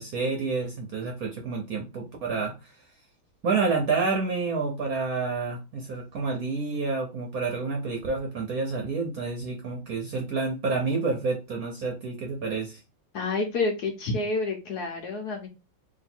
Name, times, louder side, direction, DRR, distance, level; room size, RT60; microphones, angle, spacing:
voice 1, 0.0-2.7 3.4-12.8, right 4 dB, 60° right, 2 dB, 1.0 m, -29 dB
voice 2, 13.1-15.5, left 3 dB, 60° left, 2 dB, 1.2 m, -29 dB
3.1 x 2.7 x 4.2 m, 0.27 s
omnidirectional pair, 2.2 m